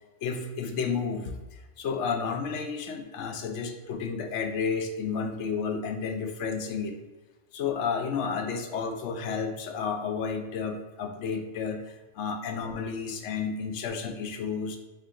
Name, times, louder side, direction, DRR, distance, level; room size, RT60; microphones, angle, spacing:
voice 1, 0.2-7.0 7.5-14.8, left 5 dB, 80° left, 5 dB, 0.9 m, -31 dB
3.6 x 2.8 x 3.6 m, 1.2 s
omnidirectional pair, 1.2 m